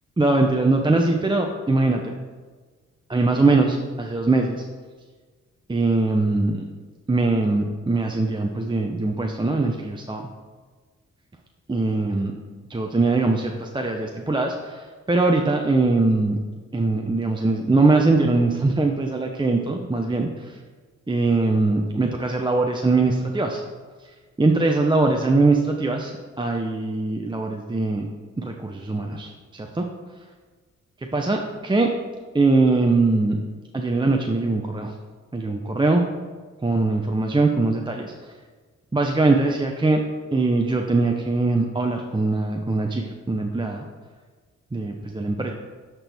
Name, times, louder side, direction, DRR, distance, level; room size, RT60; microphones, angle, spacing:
voice 1, 0.2-2.1 3.1-4.6 5.7-6.6 7.1-10.3 11.7-12.3 12.7-16.4 16.7-20.6 21.1-23.6 24.0-28.1 28.4-29.8 31.1-31.9 32.3-33.4 33.7-34.9 35.3-36.0 36.6-38.3 38.9-40.0 40.3-43.8 44.7-45.5, right 3 dB, 15° right, 2 dB, 0.6 m, -22 dB
10.0 x 4.5 x 3.5 m, 1.4 s
cardioid pair, 55°, 31 cm